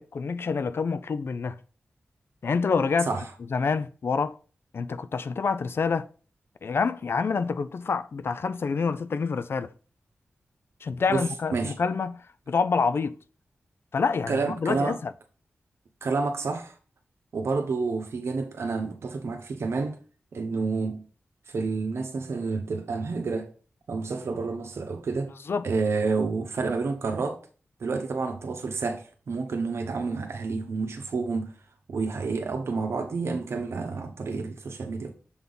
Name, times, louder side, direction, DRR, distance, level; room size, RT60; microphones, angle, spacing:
voice 1, 0.0-1.6 2.4-3.1 3.5-4.4 4.7-6.1 6.6-9.7 10.8-12.2 12.5-13.2 13.9-15.1 25.5-25.6, left 5 dB, 60° left, 0.4 m, -27 dB
voice 2, 14.3-15.0 16.0-16.7 17.3-20.0 20.3-21.0 21.5-23.5 23.9-25.3 25.6-27.4 27.8-31.5 31.9-35.1, right 4 dB, 75° right, 0.9 m, -29 dB
7.0 x 3.5 x 3.9 m
wide cardioid pair, 80°, 4 cm